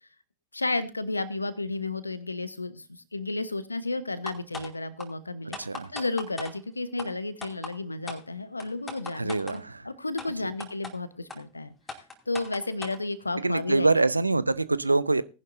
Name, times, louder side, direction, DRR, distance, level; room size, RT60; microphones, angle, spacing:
voice 1, 0.5-5.6 5.9-11.7 12.3-13.9, left 2 dB, 80° left, 1.1 m, -32 dB
sound 1, 4.3-4.7 5.0-5.1 5.5-6.5 7.0-7.1 7.4-7.7 8.1-8.2 8.6-9.6 10.2-10.3 10.6-10.9 11.3-11.4 11.9-13.0, left 3 dB, 10° left, 2.7 m, -38 dB
voice 2, 5.6-5.9 9.2-9.9 10.4-10.5 13.4-15.2, right 3 dB, 80° right, 0.5 m, -25 dB
18.5 x 10.5 x 2.6 m
figure-of-eight pair, 90°, 0 cm